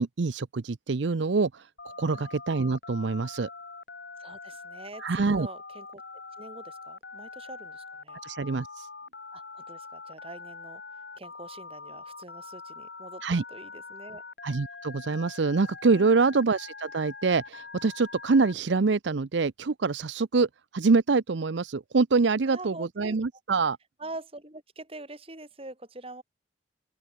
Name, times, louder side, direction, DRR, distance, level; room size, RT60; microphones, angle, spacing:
voice 1, 0.0-3.5 5.0-5.5 8.2-8.9 13.2-13.4 14.4-23.8, right 4 dB, 70° right, 0.6 m, -25 dB
Telephone, 1.8-18.5, left 4 dB, 65° left, 4.8 m, -44 dB
voice 2, 4.2-6.0 6.4-8.2 9.3-10.8 11.2-13.2 13.5-14.2 15.9-16.3 22.4-23.2 24.0-26.2, right 2 dB, 30° right, 3.3 m, -44 dB
open air
head